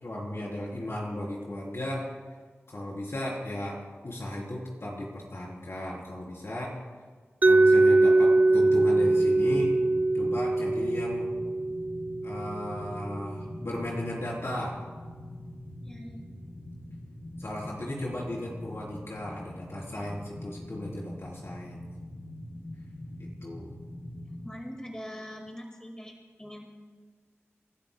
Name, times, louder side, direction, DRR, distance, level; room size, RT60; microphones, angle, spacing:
voice 1, 0.0-2.1 2.7-6.8 7.4-9.7 10.1-11.3 12.2-14.8 17.4-21.8 23.2-23.7, left 1 dB, 65° left, -3 dB, 3.9 m, -35 dB
Mallet percussion, 7.4-13.3, right 2 dB, 35° right, 0.3 m, -23 dB
sound 1, 8.5-24.5, left 1 dB, 80° left, 3.1 m, -43 dB
voice 2, 15.8-16.3 24.4-26.7, equal, 15° left, 1 dB, 2.0 m, -42 dB
27.5 x 12.0 x 2.3 m, 1.5 s
cardioid pair, 45°, 5 cm